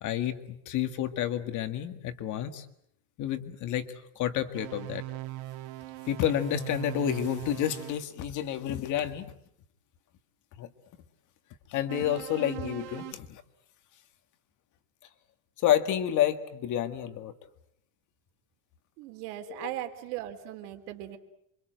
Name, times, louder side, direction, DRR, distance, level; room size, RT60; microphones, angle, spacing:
voice 1, 0.0-2.7 3.2-3.9 4.2-5.0 6.1-9.3 10.6-10.7 11.7-13.4 15.6-17.3 19.5-19.7, left 11 dB, 40° left, 9 dB, 1.9 m, -29 dB
sound 1, 4.5-8.0 11.9-13.1, right 18 dB, 55° right, 1.6 m, -40 dB
voice 2, 19.0-21.2, right 13 dB, 90° right, 6 dB, 3.9 m, -38 dB
28.0 x 24.5 x 7.9 m, 0.73 s
cardioid pair, 180°, 45 cm